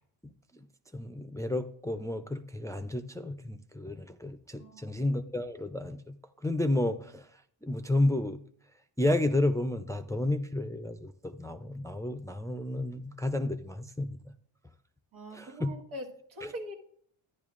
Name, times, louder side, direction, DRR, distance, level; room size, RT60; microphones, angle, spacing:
voice 1, 0.9-6.2 6.4-7.3 7.6-8.4 9.0-14.2 15.3-15.7, left 1 dB, 10° left, 0.3 m, -31 dB
voice 2, 4.6-5.0 15.1-16.7, equal, 90° right, 1.6 m, -42 dB
12.5 x 9.9 x 2.4 m
cardioid pair, 80°, 47 cm